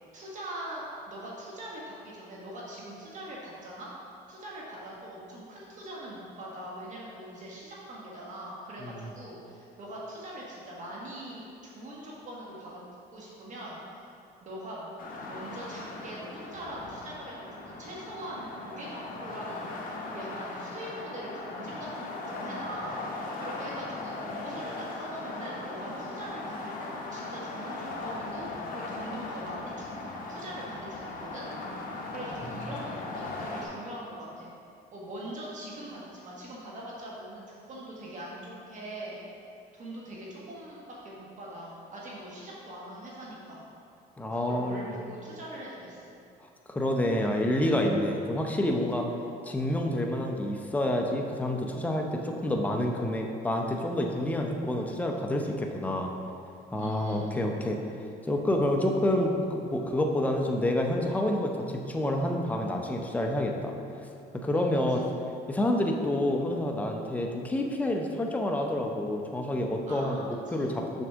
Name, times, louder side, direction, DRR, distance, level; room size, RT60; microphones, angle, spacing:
voice 1, 0.1-3.9 4.3-12.8 13.1-14.1 14.4-19.6 20.1-22.9 23.4-30.0 30.3-31.4 32.1-34.5 34.9-39.2 39.7-43.6 44.3-46.1 56.8-57.3 64.5-64.7 65.0-65.1 69.9-70.3 70.5-70.8, right 1 dB, 50° right, -5 dB, 1.4 m, -42 dB
sound 1, 15.0-33.7, left 2 dB, 55° left, 1.0 m, -38 dB
voice 2, 44.2-44.9 46.7-49.1 49.4-56.1 56.7-57.8 58.3-63.7 64.3-65.0 65.5-71.0, left 1 dB, 10° left, 1 dB, 0.6 m, -28 dB
6.4 x 6.1 x 3.6 m, 2.5 s
cardioid pair, 110°, 17 cm